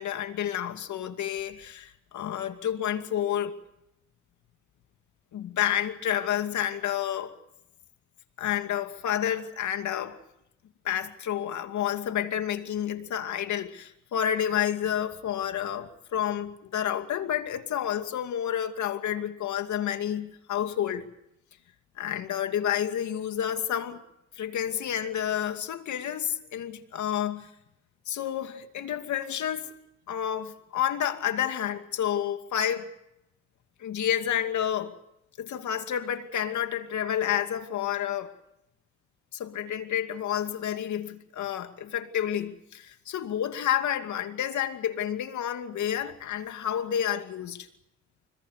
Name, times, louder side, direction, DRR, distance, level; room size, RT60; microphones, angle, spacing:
voice 1, 0.0-3.5 5.3-7.3 8.4-10.2 10.8-21.1 22.0-24.0 24.4-27.5 28.1-29.7 30.1-32.9 33.8-35.0 35.4-38.3 39.3-47.7, left 10 dB, 70° left, 2.5 m, -30 dB
26.0 x 22.5 x 6.6 m
cardioid pair, 90°, 30 cm